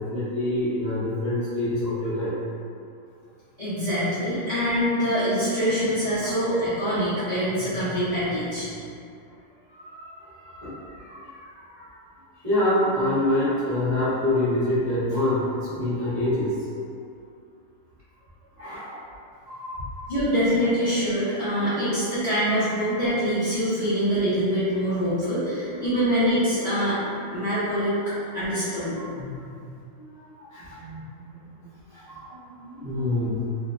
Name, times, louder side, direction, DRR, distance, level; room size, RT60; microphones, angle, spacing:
voice 1, 0.0-2.3 4.3-4.4 6.2-6.3 9.7-11.9 12.4-16.7 18.6-19.1 19.5-19.9 21.5-21.9 28.0-28.1 29.0-29.1 30.0-31.0 31.3-33.6, left 1 dB, 30° right, -16 dB, 0.8 m, -27 dB
voice 2, 3.6-8.7 20.1-27.0 27.3-27.9 28.3-29.4, equal, 70° left, -16 dB, 0.4 m, -24 dB
3.1 x 2.0 x 2.4 m, 2.4 s
omnidirectional pair, 2.1 m